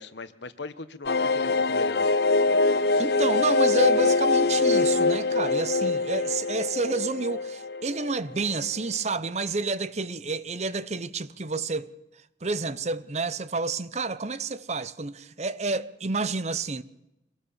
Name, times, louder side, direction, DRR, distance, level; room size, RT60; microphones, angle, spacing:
voice 1, 0.0-2.1, left 3 dB, 80° left, 1.3 m, -38 dB
sound 1, 1.1-8.5 8.8-8.9 9.2-9.3, left 3 dB, 60° left, 0.7 m, -23 dB
voice 2, 3.0-11.9 12.4-16.8, right 3 dB, 40° right, 0.8 m, -29 dB
24.5 x 18.5 x 7.3 m
head